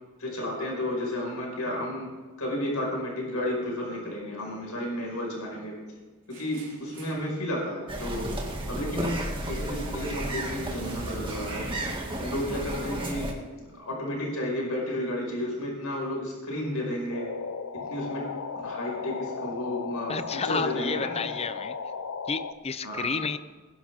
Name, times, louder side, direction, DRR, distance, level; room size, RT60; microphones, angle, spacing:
voice 1, 0.2-2.1 2.4-5.8 6.3-11.6 12.2-13.3 13.5-17.3 17.7-18.3 18.6-21.2 22.8-23.1, left 1 dB, 85° left, -1 dB, 5.1 m, -32 dB
sound 1, 6.3-7.3 9.0-9.4 9.7-10.0 10.8-13.1, right 1 dB, 55° right, 4.3 m, -44 dB
sound 2, 7.9-13.3, right 1 dB, 25° right, 2.1 m, -33 dB
sound 3, 17.1-22.5, left 5 dB, 65° left, 0.7 m, -36 dB
voice 2, 20.1-21.8 22.3-23.4, left 5 dB, 30° left, 13 dB, 0.6 m, -31 dB
21.5 x 11.0 x 3.6 m, 1.4 s
head